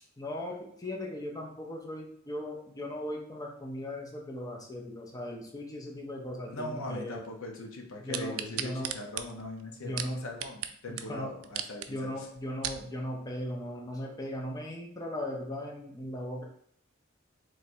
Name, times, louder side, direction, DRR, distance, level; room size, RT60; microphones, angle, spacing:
voice 1, 0.0-7.3 8.0-8.9 9.8-10.2 10.9-11.3 11.9-16.4, left 1 dB, 20° left, 0 dB, 0.5 m, -38 dB
voice 2, 6.5-12.3, left 1 dB, 80° left, 2 dB, 0.7 m, -40 dB
sound 1, 8.1-10.7 11.0-11.1 11.4-11.9 12.4-12.8 13.5-13.6, right 10 dB, 90° right, 0.3 m, -36 dB
3.1 x 2.6 x 4.3 m, 0.63 s
head